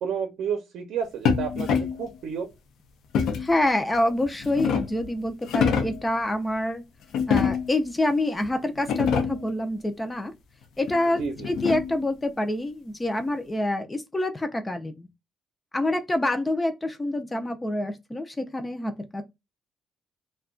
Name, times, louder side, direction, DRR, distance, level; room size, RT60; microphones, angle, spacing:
voice 1, 0.0-2.5 11.2-11.5, right 7 dB, 75° right, 0.6 m, -31 dB
sound 1, 1.3-2.1 3.1-3.6 4.2-5.1 5.4-6.1 7.1-7.8 8.4-8.5 8.8-9.5 10.9-12.0, left 6 dB, 80° left, 0.6 m, -26 dB
voice 2, 3.4-6.8 7.3-10.3 10.8-15.1 15.7-19.2, left 1 dB, 15° left, 0.4 m, -27 dB
2.2 x 2.2 x 3.6 m
cardioid pair, 135°, 0 cm